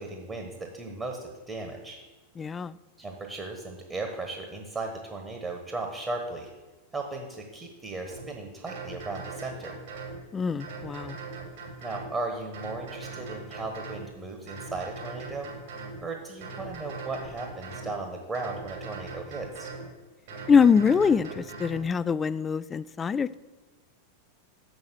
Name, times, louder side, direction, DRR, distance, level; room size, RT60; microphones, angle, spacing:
voice 1, 0.0-2.0 3.0-6.5 6.9-9.8 11.8-15.5 16.0-19.7, right 3 dB, 15° right, 3 dB, 1.3 m, -36 dB
voice 2, 2.4-2.8 10.3-11.2 20.5-23.4, left 6 dB, 20° left, 17 dB, 0.3 m, -24 dB
sound 1, 8.1-8.3 8.7-10.2 10.6-12.1 12.5-14.1 14.5-16.0 16.4-17.9 18.3-19.9 20.3-21.8, right 4 dB, 55° right, 3.0 m, -40 dB
7.2 x 6.4 x 6.3 m, 1.2 s
figure-of-eight pair, 90°, 0 cm